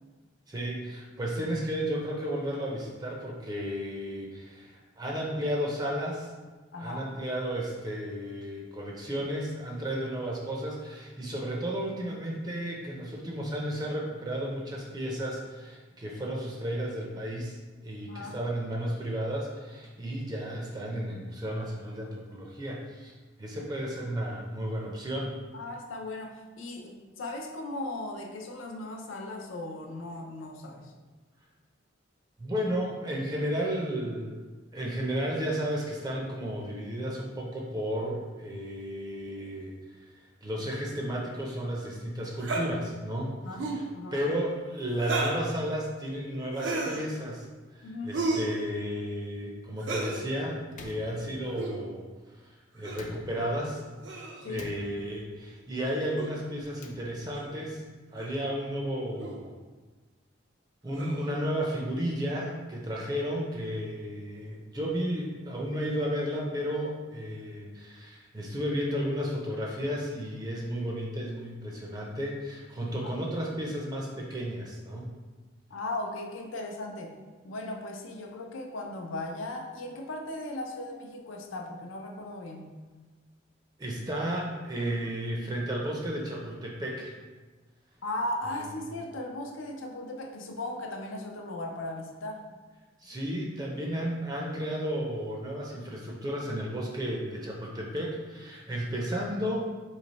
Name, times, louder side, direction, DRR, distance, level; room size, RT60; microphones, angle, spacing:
voice 1, 0.5-6.3 6.8-23.1 23.4-25.4 32.4-34.4 34.7-39.7 40.4-43.4 43.7-43.8 44.1-47.5 47.7-52.0 52.4-53.8 54.5-57.8 58.1-59.5 60.8-75.1 83.8-87.1 93.0-99.7, equal, 20° right, -2 dB, 0.5 m, -33 dB
voice 2, 6.7-7.1 18.1-18.4 25.5-30.9 43.4-43.7 43.9-44.3 47.8-48.2 54.4-54.7 73.0-73.1 75.7-77.2 77.4-82.7 88.0-92.5, left 2 dB, 90° left, 2 dB, 0.5 m, -37 dB
sound 1, 42.4-42.7 43.5-43.9 45.0-45.5 46.5-47.0 48.1-48.5 49.8-50.2 51.5-51.8 52.8-53.1 54.0-54.5 56.2-56.3 57.3-57.5 58.2-58.4 59.2-59.4 60.9-61.3, right 2 dB, 70° right, 0.5 m, -32 dB
Slam, 50.7-51.9 52.9-53.8 54.5-55.4 56.6-57.5, left 2 dB, 40° left, 0.3 m, -48 dB
3.2 x 3.0 x 4.0 m, 1.3 s
head